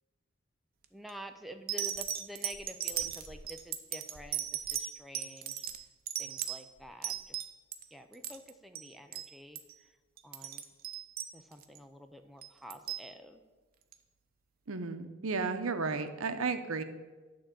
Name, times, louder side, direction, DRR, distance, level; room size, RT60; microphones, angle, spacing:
sound 1, 0.8-1.1 1.7-7.8 8.1-8.5 8.7-8.9 9.1-9.3 9.5-9.8 10.2-11.8 12.4-13.1 13.9-14.0, right 10 dB, 45° right, 0.7 m, -37 dB
voice 1, 0.9-5.7 6.2-7.4 7.9-10.0 10.2-10.6 11.3-13.4, equal, ahead, 5 dB, 0.5 m, -49 dB
voice 2, 14.7-16.8, right 4 dB, 80° right, 8 dB, 0.8 m, -33 dB
11.5 x 3.8 x 7.5 m, 1.3 s
head